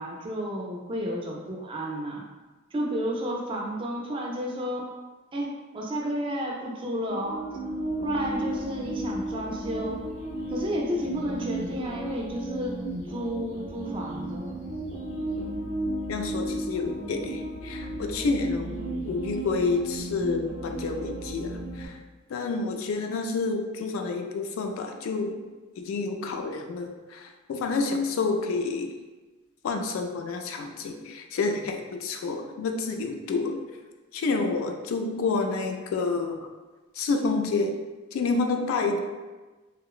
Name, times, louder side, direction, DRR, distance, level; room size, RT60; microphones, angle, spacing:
voice 1, 0.0-2.2 2.7-4.9 5.3-7.4 8.0-10.0 10.5-12.8 13.1-14.6, equal, 25° right, -1 dB, 0.3 m, -31 dB
sound 1, 7.1-21.9, right 1 dB, 30° left, 0.7 m, -34 dB
voice 2, 16.1-18.7 19.1-22.0 22.3-25.4 25.8-28.9 29.6-33.6 34.1-36.5 37.0-37.8 38.1-39.0, left 3 dB, 85° left, 4 dB, 0.3 m, -29 dB
2.8 x 2.0 x 2.3 m, 1.3 s
head